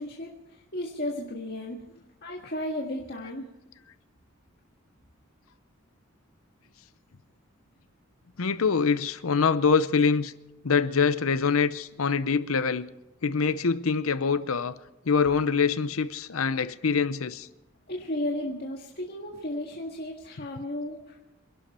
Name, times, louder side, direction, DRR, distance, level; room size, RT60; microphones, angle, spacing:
voice 1, 0.0-1.8 2.2-3.5 17.9-21.2, left 1 dB, 50° left, 1.8 m, -34 dB
voice 2, 8.4-10.3 10.6-12.9 13.2-14.8 15.1-17.5, left 5 dB, 80° left, 0.7 m, -24 dB
26.5 x 11.5 x 4.4 m
head